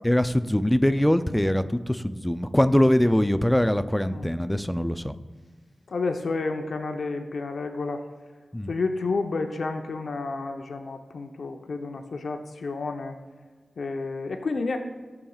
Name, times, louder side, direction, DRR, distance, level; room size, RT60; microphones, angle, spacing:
voice 1, 0.0-5.2 8.5-8.7, left 1 dB, 5° left, 11 dB, 0.4 m, -22 dB
voice 2, 5.9-8.0 8.7-13.1 13.8-14.8, left 3 dB, 70° left, 4 dB, 0.7 m, -30 dB
16.0 x 7.1 x 2.4 m, 1.4 s
wide cardioid pair, 105°, 0 cm